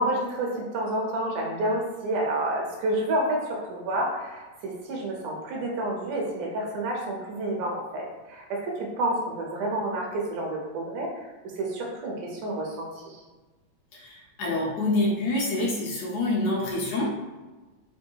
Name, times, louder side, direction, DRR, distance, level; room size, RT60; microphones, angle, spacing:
voice 1, 0.0-11.3 11.6-13.2, right 1 dB, 75° right, -2 dB, 2.3 m, -29 dB
voice 2, 13.9-17.1, left 2 dB, 65° left, -4 dB, 1.8 m, -26 dB
5.3 x 2.1 x 4.5 m, 1.2 s
omnidirectional pair, 3.8 m